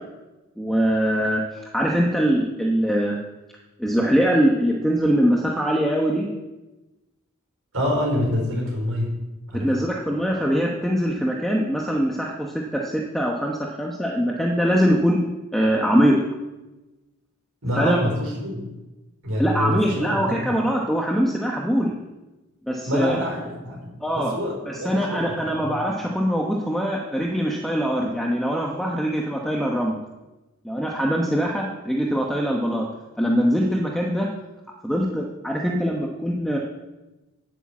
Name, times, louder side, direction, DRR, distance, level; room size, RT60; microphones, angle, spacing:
voice 1, 0.6-3.2 3.8-6.3 9.5-15.2 15.5-16.2 17.8-18.0 19.4-21.9 22.7-23.2 24.0-24.4 24.7-30.0 30.6-32.8 33.2-34.3 34.8-36.6, equal, ahead, -1 dB, 1.0 m, -22 dB
voice 2, 7.7-9.2 9.5-9.7 17.6-18.7 19.2-20.5 22.8-25.8, left 1 dB, 80° right, 0 dB, 4.6 m, -27 dB
10.0 x 8.6 x 7.2 m, 1.1 s
head